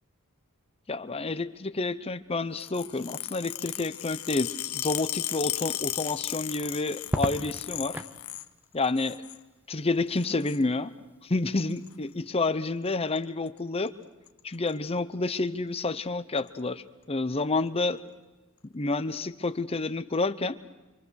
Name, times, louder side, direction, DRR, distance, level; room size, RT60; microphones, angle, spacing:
voice 1, 0.9-8.0 8.7-9.2 9.7-10.9 11.2-13.9 14.4-18.0 18.6-20.6, left 3 dB, 25° left, 12 dB, 0.8 m, -29 dB
sound 1, 2.6-8.5 8.8-9.4 10.1-10.6 11.7-11.9 12.9-13.2 13.5-13.6 13.9-14.0 14.3-14.7 15.4-15.5 16.4-16.5, left 14 dB, 70° left, 0.8 m, -35 dB
Crackle, 7.0-8.2 9.8-10.3, equal, 10° right, 0.8 m, -33 dB
26.5 x 25.5 x 6.4 m, 1.1 s
head